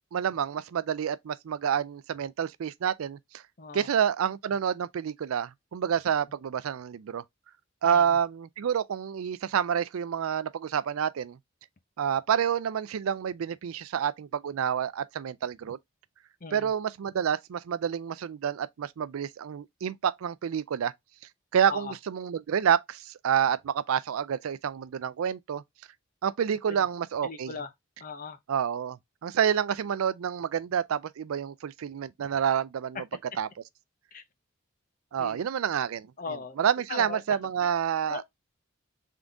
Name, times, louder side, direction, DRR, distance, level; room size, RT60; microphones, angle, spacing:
voice 1, 0.1-3.4 3.7-7.2 7.8-11.4 12.0-15.8 16.5-20.9 21.5-25.6 26.2-27.5 28.5-33.0 33.4-33.5 35.1-36.1 36.6-38.2, right 8 dB, 85° right, 0.4 m, -28 dB
voice 2, 3.6-3.9 7.8-8.1 16.4-16.7 21.7-21.9 26.7-26.8 27.2-27.7 28.0-28.4 34.1-34.2 35.2-35.4 36.2-36.6 36.9-37.2 37.6-37.7 38.1-38.2, left 4 dB, 40° left, 0.7 m, -39 dB
3.8 x 3.7 x 3.4 m
head